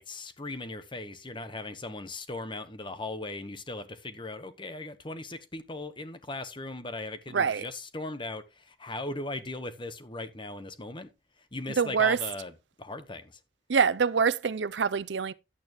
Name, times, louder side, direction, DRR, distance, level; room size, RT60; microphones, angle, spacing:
voice 1, 0.0-11.1 11.5-12.5 12.8-13.4, left 2 dB, 30° left, 1.2 m, -38 dB
voice 2, 7.3-7.7 11.8-12.2 13.7-15.3, right 6 dB, 80° right, 0.6 m, -25 dB
11.5 x 8.8 x 3.1 m
head